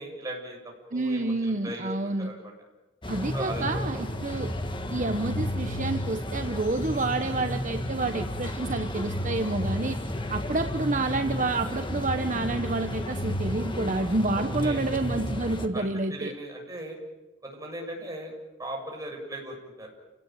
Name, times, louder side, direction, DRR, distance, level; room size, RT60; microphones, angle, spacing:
voice 1, 0.0-2.5 3.3-4.0 14.4-14.9 15.7-17.0 17.4-18.3 18.6-19.9, right 1 dB, 20° right, 0 dB, 7.6 m, -38 dB
voice 2, 0.9-2.3 3.1-4.5 4.9-10.0 10.3-16.3, right 2 dB, 45° right, 7 dB, 1.2 m, -29 dB
sound 1, 3.0-15.7, left 1 dB, 25° left, 1.9 m, -32 dB
30.0 x 18.0 x 9.2 m, 1.1 s
head